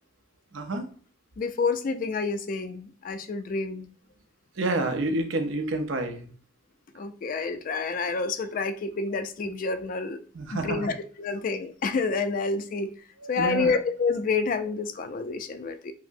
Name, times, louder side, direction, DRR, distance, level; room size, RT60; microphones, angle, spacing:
voice 1, 0.5-0.9 4.6-6.3 10.3-10.9 13.2-13.7, right 2 dB, 90° right, 5 dB, 0.6 m, -28 dB
voice 2, 1.4-3.9 6.9-10.2 10.5-12.9 13.3-15.9, left 4 dB, 45° left, 10 dB, 0.4 m, -28 dB
5.7 x 2.0 x 2.6 m, 0.42 s
head